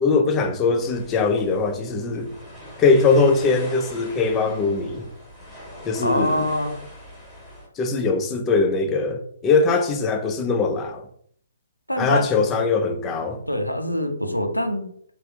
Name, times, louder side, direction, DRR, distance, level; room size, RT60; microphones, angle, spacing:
voice 1, 0.0-2.3 2.8-5.1 5.9-6.5 7.8-11.1 12.0-13.4, left 4 dB, 20° left, 0.4 m, -21 dB
sound 1, 0.8-7.7, left 1 dB, 5° right, 1.1 m, -41 dB
voice 2, 6.0-6.7 11.9-12.2 13.5-14.8, left 1 dB, 90° left, 0.7 m, -24 dB
3.3 x 2.6 x 3.6 m
figure-of-eight pair, 130°, 0 cm